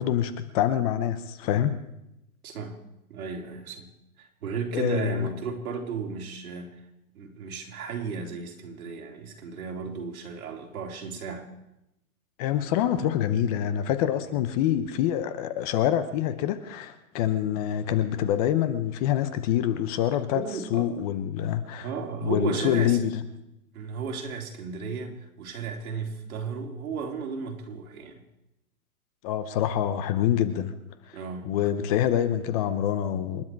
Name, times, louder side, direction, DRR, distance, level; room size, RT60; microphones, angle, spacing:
voice 1, 0.0-1.8 4.7-5.3 12.4-20.4 20.7-21.9 22.2-23.2 29.2-30.7 31.1-31.2 31.4-33.4, left 11 dB, 25° left, 11 dB, 0.8 m, -26 dB
voice 2, 2.4-2.8 3.1-3.9 4.2-6.8 7.1-11.5 14.3-14.4 20.3-20.9 21.8-23.0 23.7-28.2 31.1-31.5, right 5 dB, 70° right, 1 dB, 3.6 m, -34 dB
28.5 x 10.0 x 4.7 m, 0.88 s
hypercardioid pair, 145°, 45 cm